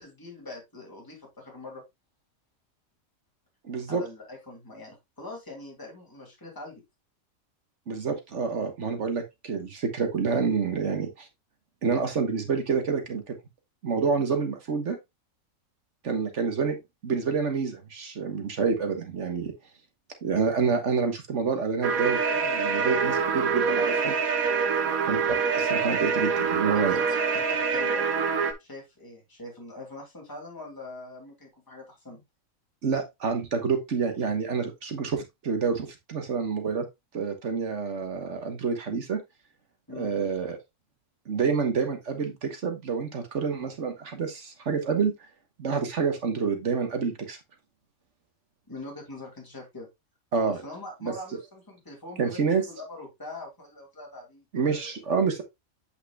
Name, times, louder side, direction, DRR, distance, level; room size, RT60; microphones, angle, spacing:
voice 1, 0.0-1.8 3.9-6.8 26.7-28.0 28.6-32.2 39.9-40.1 48.7-49.9 50.5-54.9, left 2 dB, 15° left, 2.6 m, -43 dB
voice 2, 3.6-4.0 7.9-11.3 11.8-13.4 13.8-15.0 16.0-16.8 17.0-19.5 20.2-24.1 25.1-27.0 32.8-36.9 37.1-39.2 40.0-40.6 41.3-45.1 45.6-47.4 50.3-50.6 51.0-51.1 52.2-52.6 54.5-55.4, right 5 dB, 60° right, 1.5 m, -28 dB
sound 1, 21.8-28.5, right 5 dB, 85° right, 1.4 m, -25 dB
8.2 x 5.7 x 2.4 m
omnidirectional pair, 1.5 m